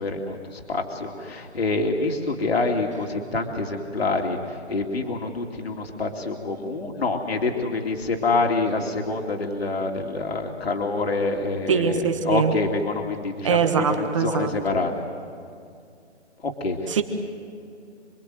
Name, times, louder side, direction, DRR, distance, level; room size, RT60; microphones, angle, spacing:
voice 1, 0.0-14.9 16.4-17.0, left 3 dB, 60° left, 2 dB, 2.8 m, -26 dB
voice 2, 11.7-12.5 13.4-14.5 16.9-17.0, right 6 dB, 25° right, 7 dB, 1.5 m, -22 dB
27.5 x 22.5 x 7.9 m, 2.4 s
hypercardioid pair, 165°, 35 cm